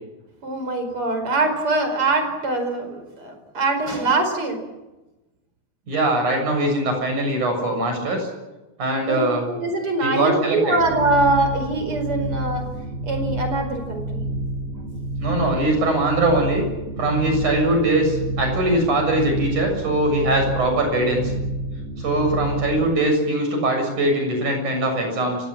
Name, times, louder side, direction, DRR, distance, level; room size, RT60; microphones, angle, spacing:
voice 1, 0.4-4.6 6.2-6.4 9.1-12.6 13.0-14.2 14.7-14.8, right 2 dB, 45° right, 6 dB, 5.7 m, -23 dB
voice 2, 5.9-8.3 8.8-9.4 10.0-10.8 15.2-16.7 17.0-21.2 22.0-25.4, right 1 dB, 80° right, 4 dB, 8.6 m, -21 dB
sound 1, 10.8-22.9, right 2 dB, 60° right, 4.6 m, -29 dB
30.0 x 18.5 x 7.5 m, 1.1 s
omnidirectional pair, 3.4 m